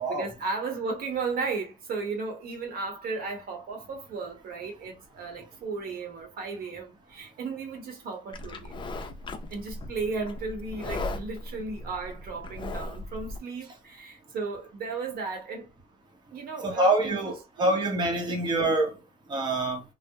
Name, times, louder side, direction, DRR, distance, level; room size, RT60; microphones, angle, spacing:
voice 1, 0.0-8.8 9.5-15.7 16.3-17.8 18.3-18.5, right 4 dB, 60° right, 0.9 m, -35 dB
Livestock farm animals working animals, 8.3-13.4, left 2 dB, 30° left, 0.4 m, -37 dB
voice 2, 16.6-18.9 19.3-19.8, right 2 dB, 25° right, 0.8 m, -25 dB
2.3 x 2.0 x 2.8 m
cardioid pair, 110°, 17 cm